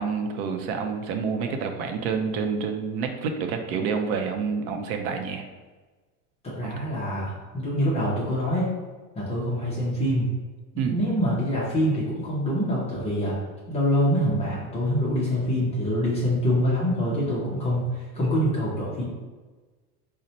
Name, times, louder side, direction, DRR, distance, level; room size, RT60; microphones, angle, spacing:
voice 1, 0.0-5.4 6.6-6.7 10.8-11.0, right 5 dB, 65° right, 5 dB, 0.6 m, -28 dB
voice 2, 6.4-8.7 9.2-10.3 10.7-13.4 13.7-19.0, equal, 15° left, -6 dB, 0.3 m, -25 dB
4.0 x 2.1 x 2.7 m, 1.3 s
supercardioid pair, 125°, 48 cm